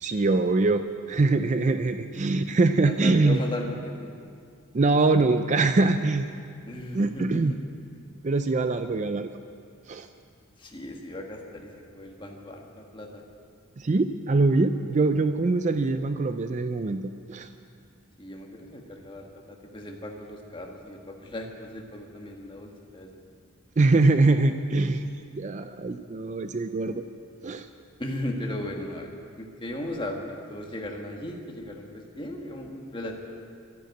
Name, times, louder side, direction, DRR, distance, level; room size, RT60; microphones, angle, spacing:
voice 1, 0.0-3.4 4.7-6.3 6.9-7.5 8.2-9.3 9.9-10.1 13.8-17.0 17.3-17.5 23.8-25.0 25.3-27.0 27.4-27.7, right 3 dB, 35° right, 9 dB, 0.4 m, -23 dB
voice 2, 2.8-4.1 6.7-7.6 10.6-13.2 18.2-23.2 28.0-33.2, left 1 dB, 20° left, 1 dB, 1.4 m, -37 dB
12.0 x 10.0 x 9.1 m, 2.3 s
head